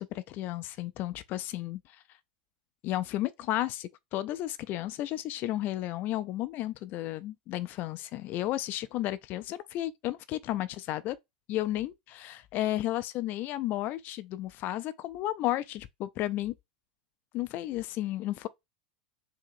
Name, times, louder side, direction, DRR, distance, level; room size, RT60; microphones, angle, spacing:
voice 1, 0.0-2.0 2.8-11.2 11.5-16.5 17.3-18.5, left 14 dB, 45° left, 0.4 m, -33 dB
4.8 x 2.8 x 2.5 m
figure-of-eight pair, 85°, 5 cm